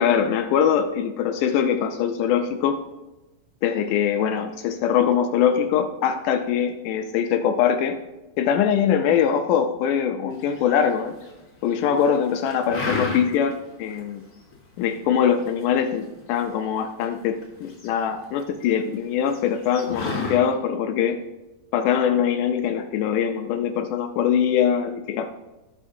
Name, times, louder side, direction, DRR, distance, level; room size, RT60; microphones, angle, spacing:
voice 1, 0.0-2.8 3.6-8.0 8.4-11.2 11.6-14.2 14.8-21.2 21.7-25.3, left 8 dB, 80° left, 7 dB, 1.9 m, -22 dB
sound 1, 10.5-11.3 11.7-12.2 12.5-13.5 13.9-14.0 14.3-14.8 15.3-17.1 17.4-18.6 18.9-19.0 19.3-20.4, left 3 dB, 45° left, 1.2 m, -30 dB
17.0 x 6.1 x 2.6 m, 1.0 s
omnidirectional pair, 4.1 m